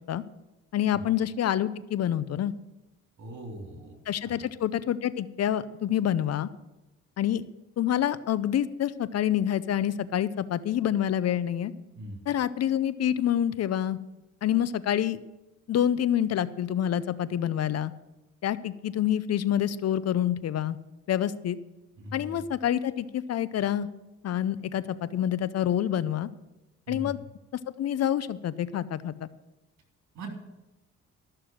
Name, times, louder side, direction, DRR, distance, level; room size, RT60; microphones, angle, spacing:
voice 1, 0.7-2.5 4.1-6.5 7.2-7.4 7.8-11.7 12.3-14.0 14.4-15.2 15.7-17.9 18.4-20.8 21.1-21.6 22.1-23.9 24.2-26.3 26.9-27.2 27.8-29.3, left 10 dB, 55° left, 16 dB, 0.6 m, -27 dB
voice 2, 3.2-4.0 4.2-4.5 12.0-12.2 22.0-22.4 26.9-27.1 30.1-30.3, equal, 65° right, 2 dB, 3.7 m, -41 dB
13.0 x 6.8 x 7.4 m, 1.0 s
cardioid pair, 90°, 30 cm